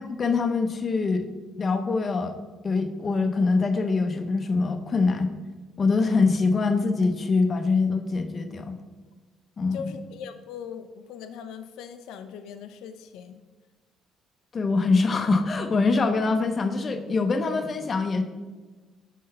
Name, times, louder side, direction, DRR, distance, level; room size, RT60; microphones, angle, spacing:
voice 1, 0.2-1.2 1.6-2.3 2.6-5.3 5.8-8.8 9.6-9.9 14.5-18.2, left 4 dB, 30° left, 6 dB, 0.5 m, -24 dB
voice 2, 9.7-13.4, left 7 dB, 85° left, 8 dB, 0.4 m, -40 dB
5.4 x 3.9 x 5.3 m, 1.3 s
cardioid pair, 140°, 0 cm